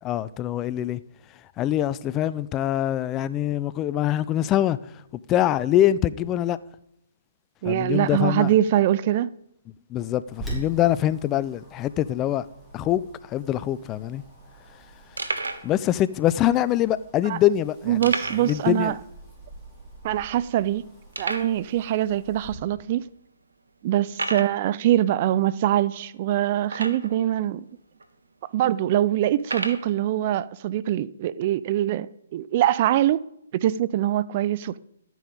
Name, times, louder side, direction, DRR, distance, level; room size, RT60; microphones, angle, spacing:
voice 1, 0.0-1.0 1.6-4.8 5.3-6.6 7.6-8.5 9.9-12.5 12.7-14.2 15.6-18.0 18.4-18.9, left 12 dB, 25° left, 0.4 m, -24 dB
voice 2, 7.6-9.3 17.3-17.4 17.9-19.0 20.0-20.8 21.2-23.1 23.8-27.6 28.5-33.2 33.5-34.8, right 12 dB, 40° right, 0.5 m, -23 dB
Wind, 10.3-22.5, right 3 dB, ahead, 4.7 m, -44 dB
sound 1, 13.7-13.8 14.0-14.1 14.7-14.8 15.2-15.7 16.4-16.5 18.0-18.6 18.9-19.0 19.4-19.5 20.1-20.2 21.1-21.6 22.4-22.5 23.0-23.2 24.1-24.6 26.6-27.2 28.0-28.1 29.4-29.9, right 3 dB, 80° right, 1.4 m, -31 dB
13.0 x 9.2 x 5.2 m
figure-of-eight pair, 135°, 0 cm